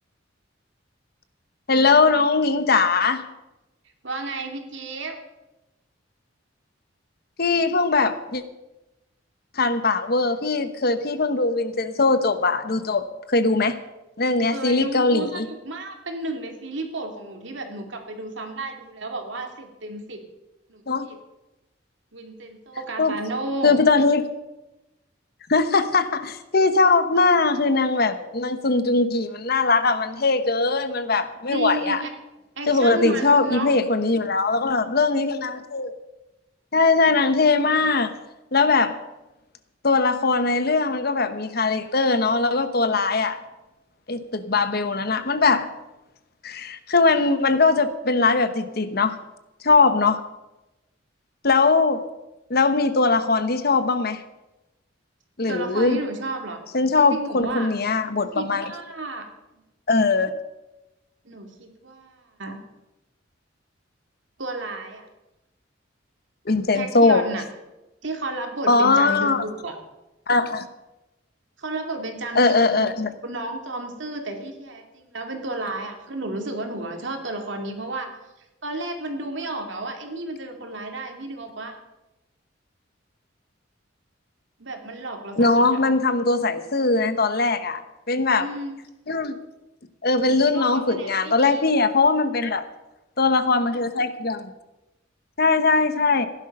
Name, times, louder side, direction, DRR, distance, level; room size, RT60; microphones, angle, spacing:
voice 1, 1.7-3.2 7.4-8.4 9.6-13.8 14.2-15.5 20.9-21.1 23.0-23.2 23.6-24.3 25.5-32.0 32.7-35.9 36.7-38.1 38.5-39.0 39.8-43.4 44.1-45.7 46.4-49.2 49.6-50.2 51.4-52.0 52.5-54.2 55.4-56.0 56.7-58.7 59.9-60.3 66.5-67.2 68.7-69.4 70.3-70.7 72.3-73.1 85.4-87.8 88.1-88.5 89.1-89.4 90.0-92.7 93.2-94.5 95.4-96.3, left 3 dB, 50° left, 10 dB, 1.0 m, -20 dB
voice 2, 4.0-5.2 14.5-20.2 20.7-21.2 22.1-23.8 31.5-32.1 32.5-33.7 55.5-56.6 57.0-57.7 58.3-59.6 61.2-62.6 64.4-65.1 66.7-67.4 68.0-69.7 71.6-78.1 78.6-81.8 84.6-85.8 88.3-88.8 90.3-91.7, right 2 dB, 70° right, 4 dB, 2.5 m, -32 dB
16.0 x 11.0 x 5.4 m, 1.0 s
head